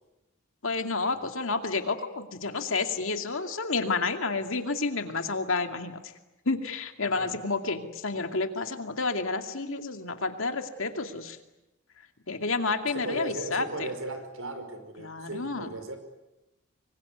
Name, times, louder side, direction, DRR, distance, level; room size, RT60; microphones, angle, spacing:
voice 1, 0.6-6.0 6.5-11.4 12.3-13.9 15.0-15.7, left 3 dB, 65° left, 6 dB, 2.4 m, -30 dB
voice 2, 12.9-16.0, right 2 dB, 70° right, 8 dB, 5.2 m, -37 dB
25.5 x 24.0 x 9.4 m, 0.99 s
head